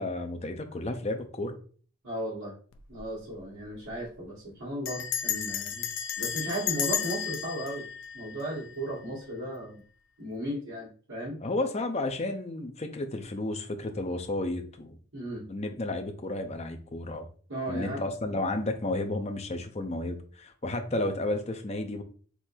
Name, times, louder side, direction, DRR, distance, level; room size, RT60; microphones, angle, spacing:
voice 1, 0.0-1.5 11.4-15.0 15.5-17.3 17.7-22.0, left 2 dB, 30° left, 6 dB, 0.7 m, -32 dB
voice 2, 2.0-2.6 2.9-5.8 6.2-7.9 8.1-9.8 10.2-11.4 15.1-15.5 17.5-18.0 18.3-18.4 20.9-21.0, right 1 dB, 80° right, -9 dB, 2.4 m, -35 dB
Bell, 2.7-3.1 3.4-3.5 3.7-4.1 4.9-8.9, left 9 dB, 70° left, 0.5 m, -33 dB
4.5 x 3.9 x 2.7 m, 0.41 s
head